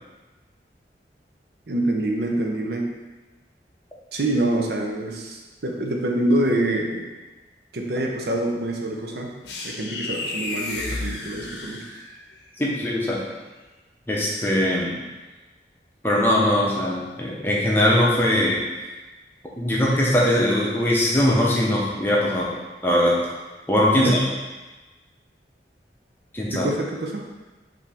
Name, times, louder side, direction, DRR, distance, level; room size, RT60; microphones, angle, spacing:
voice 1, 1.7-2.9 4.1-7.1 7.7-9.3 9.6-11.8 23.9-24.2 26.5-27.3, right 1 dB, 65° right, 1 dB, 0.6 m, -25 dB
sound 1, 9.4-12.3, left 2 dB, 75° left, 0.6 m, -32 dB
voice 2, 12.6-13.2 14.1-15.0 16.0-18.6 19.6-22.5 22.8-23.2 23.7-24.2 26.3-26.7, left 1 dB, 10° left, -5 dB, 0.7 m, -21 dB
5.3 x 2.7 x 3.4 m, 1.2 s
head